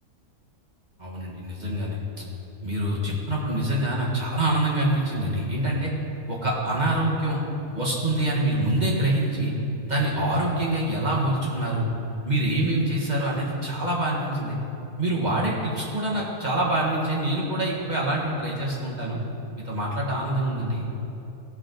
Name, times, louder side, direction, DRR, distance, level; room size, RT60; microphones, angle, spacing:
voice 1, 1.0-2.0 2.6-5.9 6.3-7.4 7.7-9.5 9.8-11.9 12.2-14.6 15.0-19.2 19.6-20.8, right 1 dB, 30° right, -5 dB, 1.7 m, -25 dB
17.0 x 6.3 x 4.0 m, 2.9 s
omnidirectional pair, 1.5 m